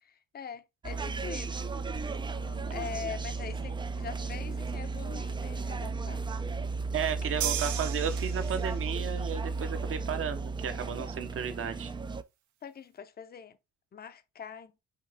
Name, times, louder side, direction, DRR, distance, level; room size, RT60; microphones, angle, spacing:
voice 1, 0.0-1.7 2.3-6.2 12.6-13.6 13.9-14.7, left 7 dB, 30° left, 0.6 m, -43 dB
sound 1, 0.8-12.2, right 4 dB, 15° right, 0.3 m, -34 dB
voice 2, 6.9-11.9, right 7 dB, 45° right, 0.8 m, -34 dB
sound 2, 7.4-9.0, right 10 dB, 75° right, 0.8 m, -35 dB
5.7 x 2.6 x 3.4 m
cardioid pair, 90°, 30 cm